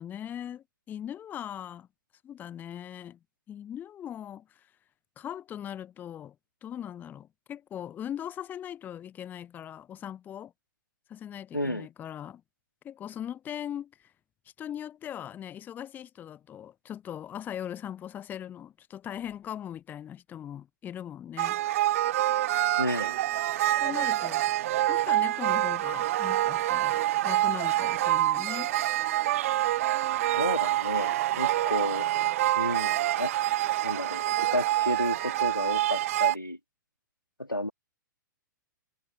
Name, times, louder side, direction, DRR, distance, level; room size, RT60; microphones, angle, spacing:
voice 1, 0.0-1.9 2.2-3.2 3.5-4.7 5.2-6.4 6.6-10.5 11.1-12.4 12.8-14.1 14.6-21.6 23.8-24.4 24.9-28.7, left 10 dB, 15° left, 0.8 m, -40 dB
voice 2, 11.5-11.9 22.8-23.2 30.3-32.2 32.6-33.3 33.8-36.6 37.4-37.7, left 1 dB, 90° left, 2.4 m, -32 dB
sound 1, 21.4-36.3, right 14 dB, 45° right, 0.4 m, -26 dB
figure-of-eight pair, 110°, 11 cm